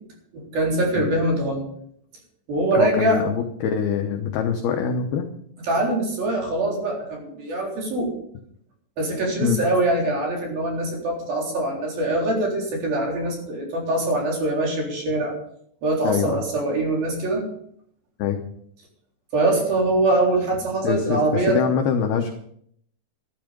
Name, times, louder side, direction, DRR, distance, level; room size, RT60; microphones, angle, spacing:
voice 1, 0.3-1.6 2.5-3.2 5.6-8.1 9.0-15.4 15.8-17.5 19.3-21.6, right 2 dB, 45° right, -1 dB, 5.3 m, -23 dB
voice 2, 2.7-5.2 9.4-9.6 16.0-16.4 18.2-18.4 20.8-22.3, left 7 dB, 85° left, 5 dB, 2.2 m, -24 dB
13.5 x 12.5 x 5.3 m, 0.67 s
omnidirectional pair, 6.0 m